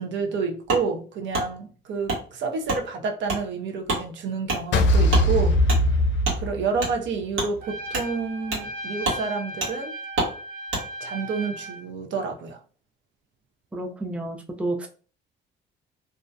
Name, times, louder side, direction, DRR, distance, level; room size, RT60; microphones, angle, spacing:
voice 1, 0.0-5.8 6.4-9.9 11.0-12.6, right 5 dB, 70° right, 3 dB, 0.5 m, -29 dB
Wood, 0.7-0.8 1.3-1.5 2.1-2.2 2.7-2.8 3.3-3.4 3.8-4.0 4.4-4.6 5.1-5.3 5.7-5.8 6.2-6.4 6.8-6.9 7.3-7.5 7.9-8.1 8.5-8.7 9.0-9.2 9.6-9.7 10.1-10.3 10.7-10.8, right 2 dB, 90° right, 1.1 m, -26 dB
sound 1, 4.7-7.1, left 1 dB, 70° left, 0.5 m, -20 dB
Trumpet, 7.6-11.9, right 1 dB, 50° right, 1.1 m, -36 dB
voice 2, 13.7-14.9, right 2 dB, 5° right, 3 dB, 0.4 m, -30 dB
2.4 x 2.1 x 2.6 m, 0.39 s
cardioid pair, 90°, 20 cm